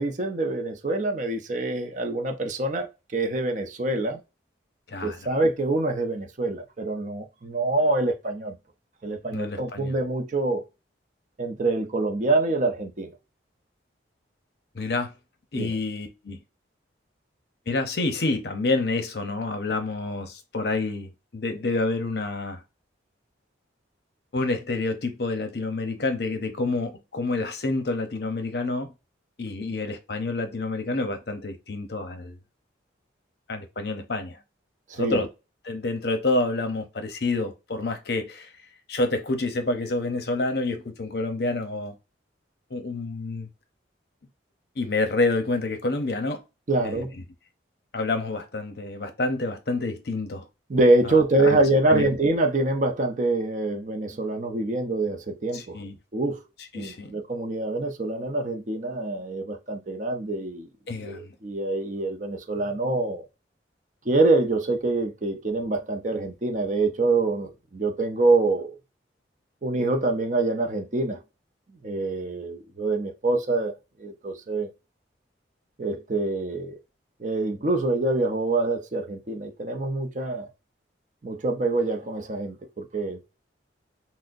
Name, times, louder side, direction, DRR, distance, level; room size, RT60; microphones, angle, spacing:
voice 1, 0.0-4.2 5.0-8.6 9.0-10.7 11.4-13.1 15.5-15.7 34.9-35.3 46.7-47.1 50.7-55.8 56.1-56.4 56.7-60.7 61.0-63.3 64.1-68.8 69.6-71.2 71.8-73.7 74.0-74.7 75.8-76.8 77.2-80.5 81.2-83.2, right 2 dB, 40° right, 0.5 m, -25 dB
voice 2, 4.9-5.2 9.3-10.0 14.7-15.1 15.5-16.4 17.7-22.6 24.3-28.9 29.4-32.4 33.5-34.4 34.9-35.3 35.6-38.5 38.9-41.9 42.7-43.5 44.8-46.4 46.8-47.0 47.9-50.5 51.0-51.6 51.9-52.2 55.5-56.0 56.7-57.1 60.9-61.3, left 2 dB, 55° left, 0.6 m, -28 dB
6.1 x 2.0 x 2.5 m
head